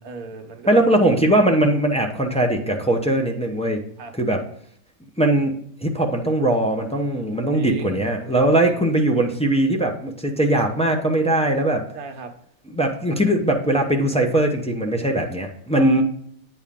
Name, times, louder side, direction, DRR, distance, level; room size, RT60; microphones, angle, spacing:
voice 1, 0.0-1.0 4.0-4.1 7.5-8.8 11.9-12.3 15.7-16.0, right 4 dB, 75° right, 4 dB, 1.5 m, -36 dB
voice 2, 0.7-3.8 4.2-4.4 5.2-5.5 5.8-11.8 12.7-16.0, right 1 dB, 5° left, 1 dB, 0.5 m, -20 dB
8.8 x 4.5 x 3.6 m, 0.68 s
omnidirectional pair, 1.6 m